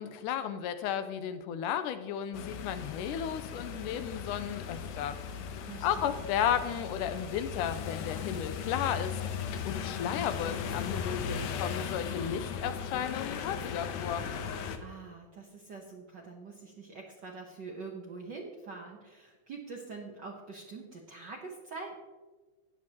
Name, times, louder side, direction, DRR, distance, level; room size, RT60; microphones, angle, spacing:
voice 1, 0.0-5.2 5.8-9.2 9.6-14.2, left 9 dB, 90° left, 10 dB, 2.2 m, -34 dB
sound 1, 2.3-14.8, left 7 dB, 75° left, 1.8 m, -37 dB
voice 2, 5.6-6.2 14.8-22.0, right 4 dB, 85° right, -1 dB, 0.9 m, -45 dB
14.0 x 9.3 x 2.9 m, 1.3 s
omnidirectional pair, 3.6 m